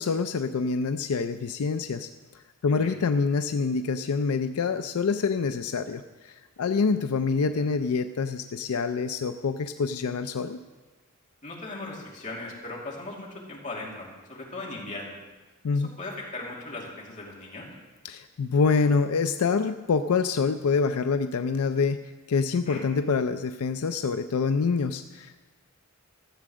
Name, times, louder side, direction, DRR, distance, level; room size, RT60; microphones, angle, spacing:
voice 1, 0.0-2.1 2.6-6.0 6.6-10.6 15.6-15.9 18.0-25.4, left 5 dB, 85° left, 9 dB, 0.4 m, -26 dB
voice 2, 11.4-15.2 15.7-17.7 22.6-22.9, left 2 dB, 35° left, -3 dB, 2.7 m, -38 dB
13.5 x 7.7 x 6.2 m, 1.3 s
head